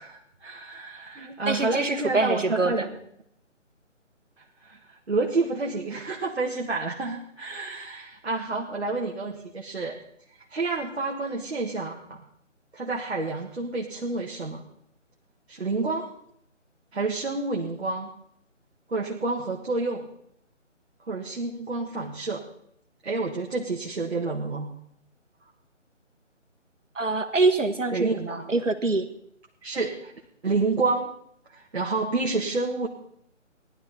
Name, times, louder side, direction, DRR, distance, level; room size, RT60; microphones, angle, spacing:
voice 1, 0.0-3.0 4.6-10.0 10.5-12.2 12.7-14.6 15.5-16.1 16.9-18.1 18.9-20.0 21.1-22.4 23.0-24.7 27.9-28.5 29.6-30.1 30.4-31.1 31.5-32.9, right 3 dB, 55° right, -1 dB, 1.8 m, -29 dB
voice 2, 1.5-2.9 26.9-29.1, right 3 dB, 75° right, 7 dB, 1.7 m, -25 dB
18.0 x 12.0 x 4.1 m, 0.70 s
figure-of-eight pair, 150°, 38 cm